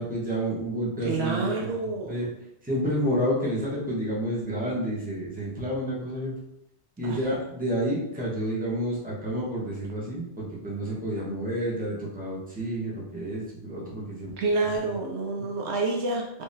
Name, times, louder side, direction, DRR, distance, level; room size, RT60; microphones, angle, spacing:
voice 1, 0.0-2.3 2.6-6.3 7.0-14.3 14.8-14.9 15.4-15.5, equal, 10° right, -7 dB, 1.0 m, -30 dB
voice 2, 1.0-2.3 7.0-7.2 14.4-16.4, right 3 dB, 75° right, 1 dB, 0.8 m, -28 dB
3.4 x 3.3 x 2.7 m, 0.83 s
omnidirectional pair, 1.2 m